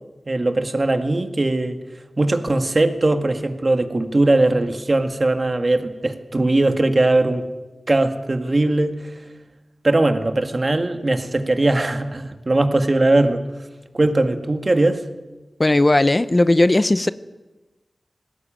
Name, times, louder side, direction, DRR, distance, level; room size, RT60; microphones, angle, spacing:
voice 1, 0.3-1.8 2.2-7.5 7.9-9.0 9.8-13.4 13.9-15.0, right 2 dB, 35° right, 1.9 m, -19 dB
voice 2, 15.6-17.1, left 2 dB, 30° left, 0.7 m, -16 dB
20.5 x 18.0 x 9.0 m
wide cardioid pair, 80°, 0 cm